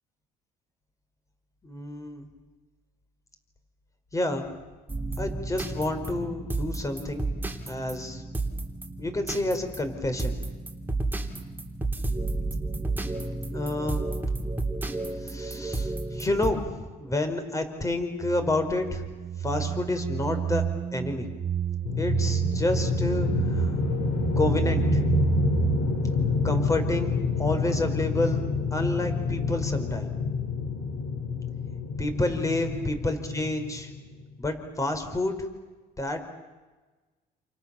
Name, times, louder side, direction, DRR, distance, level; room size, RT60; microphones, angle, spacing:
voice 1, 1.6-2.3 4.1-4.5 5.2-7.3 7.7-8.2 9.0-10.4 13.5-14.1 15.2-19.0 19.4-20.6 20.9-21.3 22.0-23.7 24.3-25.0 26.4-28.4 28.7-30.1 32.0-33.9 34.4-35.4 36.0-36.3, left 2 dB, 20° left, 7 dB, 5.0 m, -29 dB
sound 1, 4.9-16.5, right 2 dB, 10° right, 3.3 m, -32 dB
sound 2, 18.2-25.8, right 8 dB, 35° right, 1.3 m, -29 dB
sound 3, 21.9-34.1, left 4 dB, 80° left, 6.3 m, -28 dB
29.0 x 28.5 x 7.1 m, 1.3 s
cardioid pair, 110°, 17 cm